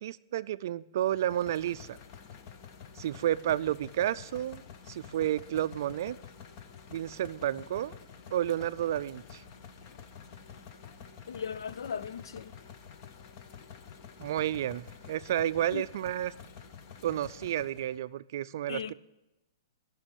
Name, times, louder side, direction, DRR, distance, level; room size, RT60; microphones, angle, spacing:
voice 1, 0.0-2.0 3.0-4.6 4.9-6.2 6.9-7.9 8.3-9.4 14.2-16.3 17.0-18.9, right 11 dB, 45° right, 0.4 m, -31 dB
sound 1, 1.1-18.0, left 7 dB, 30° left, 0.6 m, -49 dB
voice 2, 11.3-12.5 15.7-15.8 18.7-18.9, left 7 dB, 70° left, 0.5 m, -37 dB
13.0 x 6.1 x 8.1 m
hypercardioid pair, 175°, 2 cm